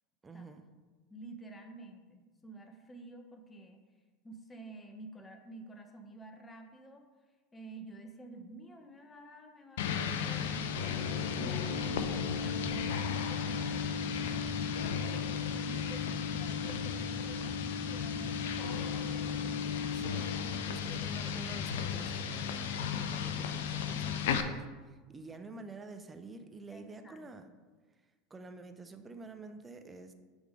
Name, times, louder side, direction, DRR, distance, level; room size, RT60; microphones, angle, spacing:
voice 1, 0.2-0.6 19.9-27.4 28.3-30.1, right 3 dB, 20° right, 7 dB, 0.6 m, -49 dB
voice 2, 1.1-3.8 4.2-7.1 7.5-19.8 23.8-24.4 26.7-27.5, right 2 dB, 20° left, 4 dB, 1.0 m, -50 dB
sound 1, 9.8-24.4, left 7 dB, 70° left, 0.5 m, -35 dB
sound 2, 10.4-21.9, left 5 dB, 50° left, 0.9 m, -39 dB
6.6 x 3.6 x 4.9 m, 1.3 s
hypercardioid pair, 80°, 0 cm